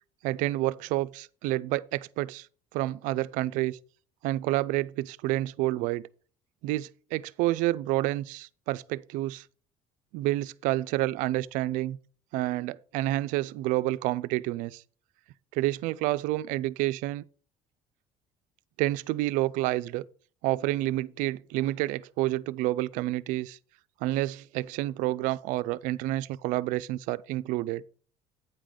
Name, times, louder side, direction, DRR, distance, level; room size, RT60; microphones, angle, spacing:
voice 1, 0.2-2.5 2.7-3.8 4.2-6.1 6.6-9.5 10.1-12.0 12.3-14.8 15.5-17.2 18.8-20.0 20.4-23.6 24.0-27.8, right 17 dB, 75° right, 0.4 m, -29 dB
8.8 x 3.9 x 6.3 m
cardioid pair, 135°, 14 cm